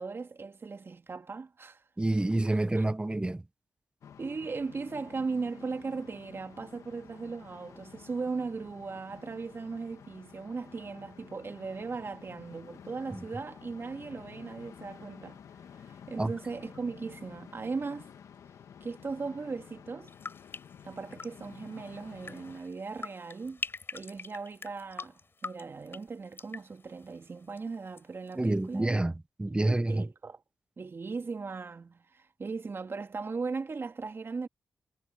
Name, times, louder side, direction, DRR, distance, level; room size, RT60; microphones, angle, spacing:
voice 1, 0.0-1.8 2.8-2.9 4.2-15.4 15.7-18.1 18.8-20.1 20.8-23.6 23.9-29.0 29.5-30.4 30.8-34.5, right 4 dB, 45° right, 2.2 m, -38 dB
voice 2, 2.0-3.4 13.1-13.2 16.2-16.3 28.4-29.1 29.4-30.1, right 2 dB, 20° right, 1.2 m, -28 dB
sound 1, 4.0-22.6, left 8 dB, 80° left, 1.7 m, -51 dB
sound 2, 20.1-28.0 28.3-28.8, left 4 dB, 45° left, 7.0 m, -45 dB
cardioid pair, 60°, 5 cm